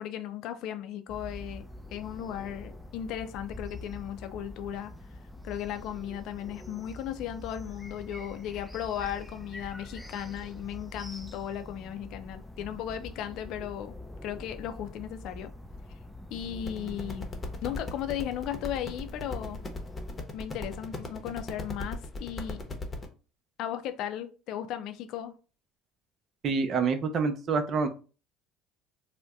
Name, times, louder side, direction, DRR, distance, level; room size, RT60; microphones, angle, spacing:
voice 1, 0.0-1.6 1.9-4.9 5.4-13.9 14.2-15.5 16.3-17.3 17.6-19.6 20.3-22.6 23.6-25.3, left 10 dB, 65° left, 0.5 m, -36 dB
sound 1, 1.1-20.2, left 1 dB, 5° left, 0.4 m, -44 dB
sound 2, 16.6-23.1, left 2 dB, 25° left, 0.8 m, -38 dB
voice 2, 26.4-27.9, right 5 dB, 45° right, 0.6 m, -27 dB
2.6 x 2.1 x 3.5 m
supercardioid pair, 85°, 0 cm